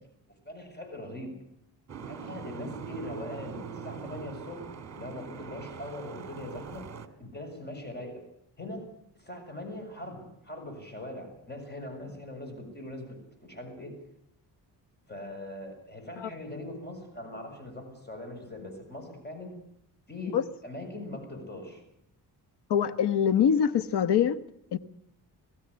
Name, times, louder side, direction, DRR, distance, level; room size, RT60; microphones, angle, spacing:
voice 1, 0.4-1.3 2.0-4.6 5.0-6.8 7.2-8.2 8.6-8.9 9.2-13.9 15.1-19.6 20.1-20.4 20.6-21.8, left 1 dB, 25° left, 6.8 m, -41 dB
Boat Water vehicle, 1.9-7.1, right 6 dB, 40° right, 2.1 m, -42 dB
voice 2, 22.7-24.4 24.7-24.8, left 8 dB, 75° left, 1.3 m, -24 dB
21.5 x 15.5 x 9.7 m
cardioid pair, 105°, 40 cm